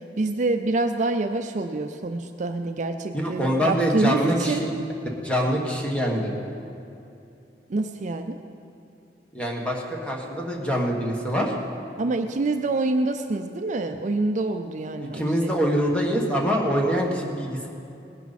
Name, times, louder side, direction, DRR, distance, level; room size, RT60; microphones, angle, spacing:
voice 1, 0.0-4.7 7.7-8.4 12.0-15.5, right 2 dB, 45° right, 7 dB, 0.5 m, -26 dB
voice 2, 3.1-4.7 5.2-6.4 9.3-11.5 15.1-17.7, equal, 5° left, -1 dB, 1.5 m, -24 dB
19.5 x 10.5 x 4.2 m, 2.7 s
head